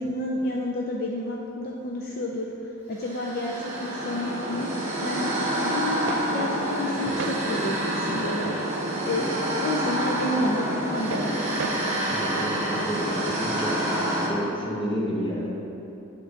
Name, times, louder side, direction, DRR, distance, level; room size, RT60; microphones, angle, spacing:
voice 1, 0.0-4.7 5.0-8.6 9.0-11.5, left 1 dB, 50° left, -2 dB, 0.5 m, -30 dB
sound 1, 3.0-14.3, right 1 dB, 35° right, 1.2 m, -28 dB
sound 2, 5.7-7.9 8.3-8.5 9.0-9.5 9.8-11.7, right 5 dB, 55° right, 0.3 m, -38 dB
voice 2, 12.1-13.9 14.3-15.5, equal, 25° left, -4 dB, 1.1 m, -30 dB
7.7 x 3.8 x 5.0 m, 2.9 s
head